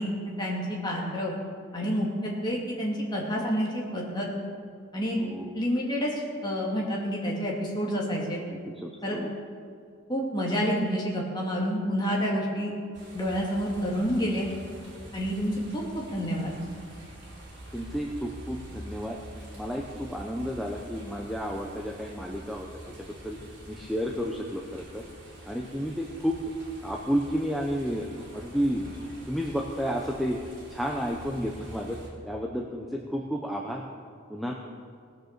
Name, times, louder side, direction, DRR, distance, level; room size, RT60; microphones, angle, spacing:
voice 1, 0.0-1.3 1.7-4.3 4.9-5.2 5.5-8.4 9.0-9.2 10.1-12.7 13.1-14.5 15.1-16.5, equal, 20° left, -3 dB, 2.3 m, -29 dB
voice 2, 5.2-5.5 8.5-9.3 17.7-19.2 19.5-23.4 23.7-25.0 25.4-26.4 26.8-28.8 29.3-30.4 30.7-32.0 32.2-33.8 34.3-34.5, equal, ahead, -1 dB, 0.7 m, -31 dB
sound 1, 12.9-32.1, right 1 dB, 55° right, 3.6 m, -46 dB
18.5 x 6.6 x 6.6 m, 2.3 s
head